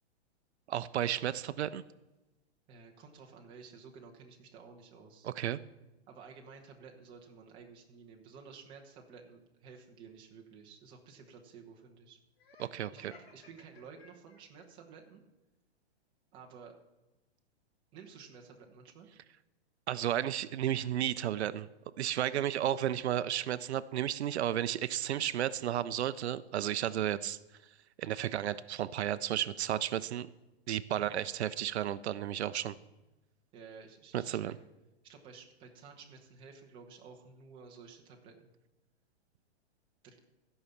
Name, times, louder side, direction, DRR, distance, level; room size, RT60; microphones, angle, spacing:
voice 1, 0.7-1.8 5.2-5.6 12.6-13.1 19.9-21.7 22.0-27.4 28.0-30.3 30.7-32.7 34.1-34.5, right 11 dB, 80° right, 15 dB, 0.6 m, -33 dB
voice 2, 2.7-5.3 6.1-12.2 13.0-15.2 16.3-16.7 17.9-19.1 22.3-22.7 30.9-31.2 33.5-34.5 35.0-38.5 40.0-40.2, right 5 dB, 15° right, 1 dB, 1.1 m, -53 dB
Laughter, 12.4-14.7, left 4 dB, 65° left, 2.9 m, -59 dB
14.5 x 5.6 x 7.1 m, 1.0 s
hypercardioid pair, 170°, 32 cm